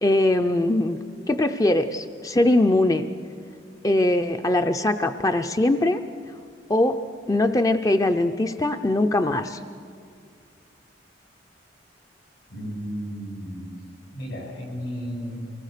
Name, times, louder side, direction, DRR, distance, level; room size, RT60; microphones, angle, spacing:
voice 1, 0.0-1.0 1.3-3.1 3.8-6.0 6.7-7.0 7.3-9.6, left 1 dB, 20° left, 7 dB, 0.5 m, -21 dB
voice 2, 12.5-13.7 14.1-15.4, equal, 80° left, 0 dB, 7.0 m, -33 dB
24.0 x 19.0 x 6.6 m, 2.3 s
head